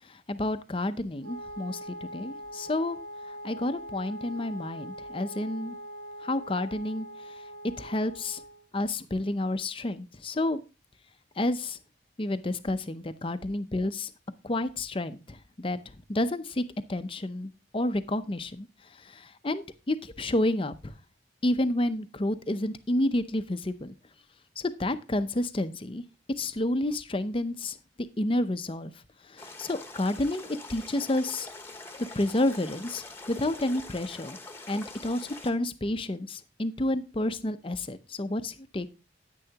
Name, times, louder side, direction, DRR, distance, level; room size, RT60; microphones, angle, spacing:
voice 1, 0.1-3.0 3.4-5.8 6.2-7.1 7.8-8.4 8.7-10.6 11.4-11.8 12.2-14.1 14.4-15.8 16.1-16.6 16.9-18.7 19.0-20.9 21.4-23.9 24.6-26.0 26.4-27.8 28.2-28.9 29.3-31.5 32.1-34.4 34.7-38.9, left 1 dB, 30° left, 11 dB, 0.6 m, -30 dB
Wind instrument woodwind instrument, 1.2-8.6, equal, 70° right, 1.1 m, -42 dB
sound 1, 29.4-35.5, left 2 dB, 10° left, 1.1 m, -44 dB
10.0 x 9.1 x 2.9 m, 0.31 s
head